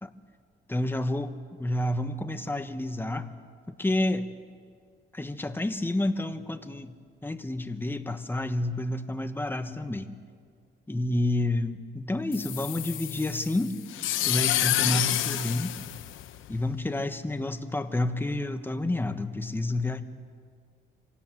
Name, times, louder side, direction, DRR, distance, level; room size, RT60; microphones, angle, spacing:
voice 1, 0.7-3.3 3.8-4.3 5.1-6.9 7.2-10.2 10.9-13.8 14.2-15.8 16.5-20.0, left 1 dB, 10° left, 8 dB, 1.3 m, -29 dB
sound 1, 12.3-16.7, left 13 dB, 85° left, 0.9 m, -29 dB
25.0 x 17.5 x 7.6 m, 2.1 s
cardioid pair, 90°, 20 cm